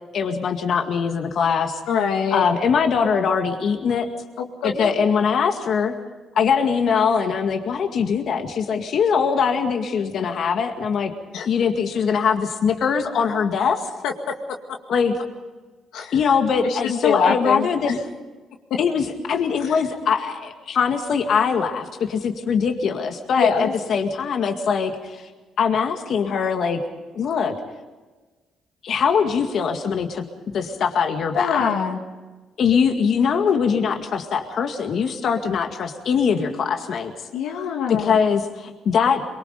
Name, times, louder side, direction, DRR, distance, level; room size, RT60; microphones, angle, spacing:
voice 1, 0.1-1.8 2.3-4.1 4.6-5.9 6.4-11.1 11.5-13.9 14.9-15.2 16.1-18.0 18.8-25.3 25.6-26.8 27.1-27.5 28.8-30.2 30.5-31.6 32.6-37.1 37.9-39.3, left 6 dB, 65° left, 5 dB, 2.0 m, -22 dB
voice 2, 1.9-2.4 4.4-4.9 11.3-11.5 14.0-14.1 15.9-16.2 16.6-17.9 23.4-23.7 31.3-32.0 37.3-38.2, left 6 dB, 90° left, 2 dB, 2.1 m, -24 dB
23.5 x 23.0 x 5.3 m, 1.3 s
cardioid pair, 90°, 0 cm